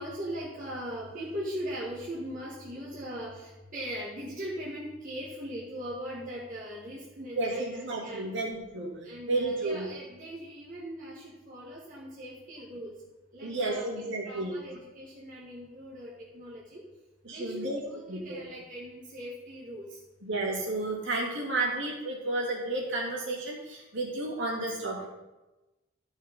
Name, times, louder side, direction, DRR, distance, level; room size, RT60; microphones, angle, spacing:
voice 1, 0.0-8.3 9.0-12.9 13.3-16.8 17.3-20.0, equal, 40° right, -6 dB, 2.0 m, -40 dB
voice 2, 7.3-8.9 9.3-9.8 13.4-14.6 17.2-17.8 18.1-18.4 20.2-25.1, right 2 dB, 60° right, -2 dB, 2.9 m, -32 dB
14.0 x 5.5 x 5.4 m, 1.1 s
head